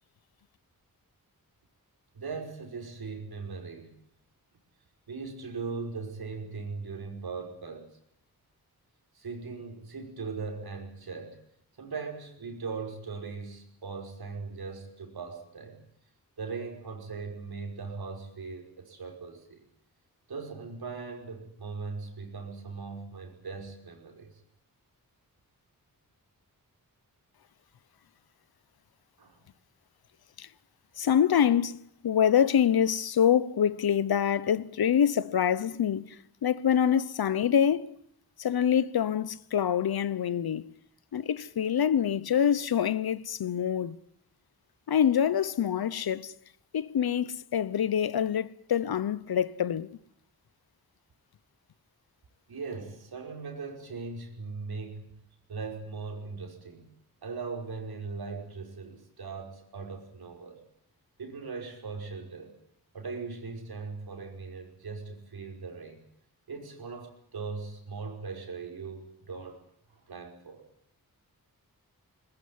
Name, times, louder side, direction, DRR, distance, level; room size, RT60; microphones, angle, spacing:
voice 1, 2.1-4.0 5.1-7.9 9.1-11.4 11.8-15.8 16.4-19.6 20.3-24.3 29.2-29.4 52.5-55.2 55.5-56.9 57.2-60.6 61.2-62.5 62.9-66.0 66.5-69.6 69.9-70.6, right 4 dB, 85° right, 5.5 m, -39 dB
voice 2, 31.0-37.9 38.4-40.6 41.1-44.0 44.9-46.3 46.7-49.9, left 9 dB, 85° left, 1.0 m, -26 dB
21.0 x 21.0 x 9.6 m
wide cardioid pair, 95°, 36 cm